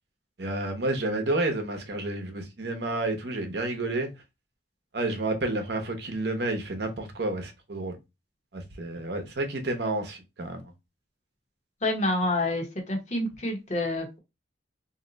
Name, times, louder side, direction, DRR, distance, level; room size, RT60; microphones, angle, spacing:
voice 1, 0.4-4.1 4.9-8.0 8.5-10.7, right 2 dB, 55° right, 0.8 m, -30 dB
voice 2, 11.8-14.2, left 1 dB, 35° left, 0.9 m, -28 dB
2.7 x 2.1 x 3.9 m
head